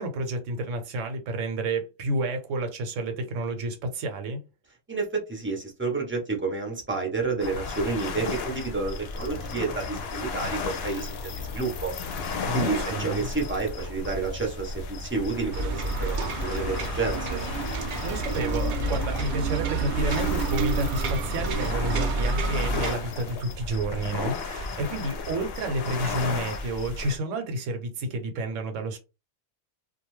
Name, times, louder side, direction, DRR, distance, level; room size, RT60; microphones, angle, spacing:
voice 1, 0.0-4.4 12.5-13.3 18.0-29.0, right 2 dB, 75° right, 1.0 m, -30 dB
voice 2, 4.9-11.9 12.5-17.4, right 4 dB, 15° right, 0.5 m, -30 dB
sound 1, 7.4-27.2, left 4 dB, 60° left, 0.7 m, -34 dB
sound 2, 15.5-22.9, right 3 dB, 60° right, 0.7 m, -29 dB
2.5 x 2.3 x 3.0 m
omnidirectional pair, 1.3 m